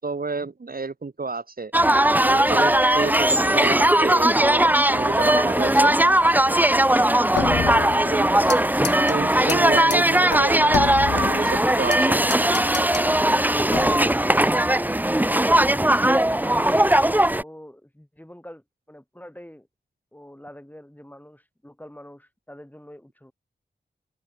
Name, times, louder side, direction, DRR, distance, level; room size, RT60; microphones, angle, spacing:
voice 1, 0.0-1.7 2.2-5.9 8.1-8.3 9.1-12.2, right 4 dB, 50° right, 2.6 m, -30 dB
sound 1, 1.7-17.4, right 1 dB, 10° right, 1.0 m, -19 dB
sound 2, 7.4-8.6 8.8-9.1 9.5-9.6 9.9-10.0 10.3-12.0 12.3-13.1 13.7-14.1, left 7 dB, 70° left, 0.8 m, -29 dB
voice 2, 8.0-9.2 13.6-15.4 16.0-17.1 17.4-19.7 20.1-23.3, left 1 dB, 10° left, 7.4 m, -44 dB
cardioid pair, 40°, 19 cm